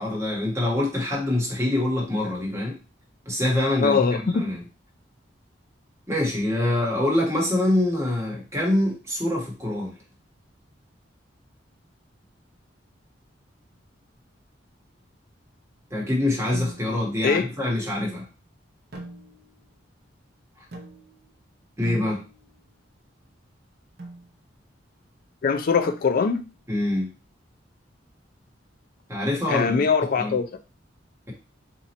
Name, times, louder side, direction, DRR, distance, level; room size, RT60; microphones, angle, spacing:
voice 1, 0.0-2.8 3.3-4.6 6.1-9.9 15.9-18.2 21.8-22.2 26.7-27.1 29.1-29.9 30.2-30.4, left 1 dB, 15° right, -2 dB, 1.1 m, -25 dB
voice 2, 3.8-4.5 17.2-17.5 25.4-26.4 29.5-30.5, left 5 dB, 50° left, 8 dB, 0.4 m, -22 dB
sound 1, 16.5-17.1 18.9-19.7 20.7-21.3 21.8-22.6 24.0-24.3 25.9-26.5, right 2 dB, 55° right, 0.8 m, -41 dB
2.9 x 2.5 x 4.1 m, 0.32 s
head